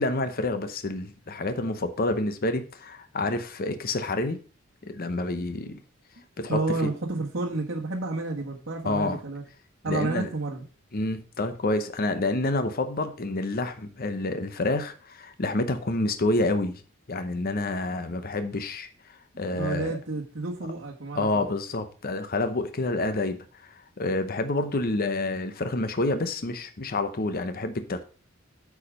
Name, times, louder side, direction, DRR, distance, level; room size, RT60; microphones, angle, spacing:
voice 1, 0.0-4.4 4.8-5.8 6.4-6.9 8.8-9.2 9.9-10.3 10.9-16.8 17.1-18.9 19.4-20.0 21.1-28.0, left 2 dB, 45° left, 9 dB, 0.8 m, -28 dB
voice 2, 6.5-9.4 9.8-10.6 19.5-21.4, right 3 dB, 60° right, -3 dB, 1.5 m, -30 dB
8.5 x 4.8 x 5.1 m, 0.38 s
head